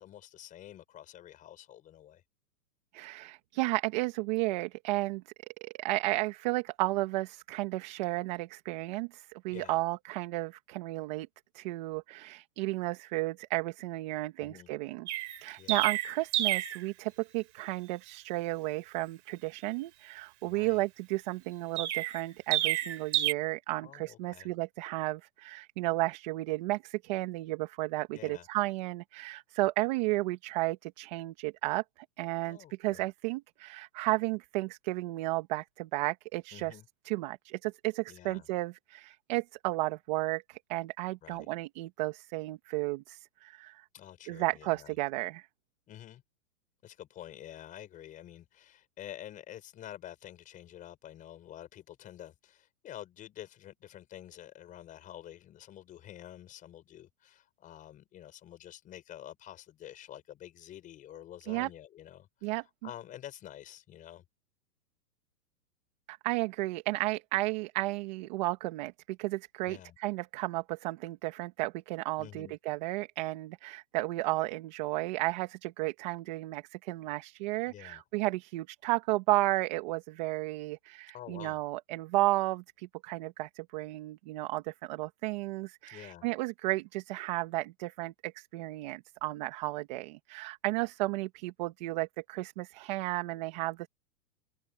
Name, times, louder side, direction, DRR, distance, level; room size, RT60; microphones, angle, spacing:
voice 1, 0.0-2.2 9.5-9.8 14.4-14.7 15.5-15.9 20.4-20.8 23.8-24.5 28.1-28.5 32.5-33.0 36.5-36.8 38.1-38.5 41.2-41.5 43.9-44.9 45.9-46.2 46.8-64.2 69.7-69.9 72.2-72.5 77.7-78.0 81.1-81.6 85.9-86.3, left 12 dB, 15° left, 7.0 m, -48 dB
voice 2, 2.9-5.2 5.6-11.3 11.5-15.1 15.4-36.8 37.0-43.9 44.3-45.5 61.5-61.7 62.4-62.6 66.1-93.9, right 19 dB, 30° right, 1.5 m, -33 dB
Chirp tweet, 15.1-16.8 21.8-23.3, right 14 dB, 50° right, 3.8 m, -30 dB
hypercardioid pair, 165°, 46 cm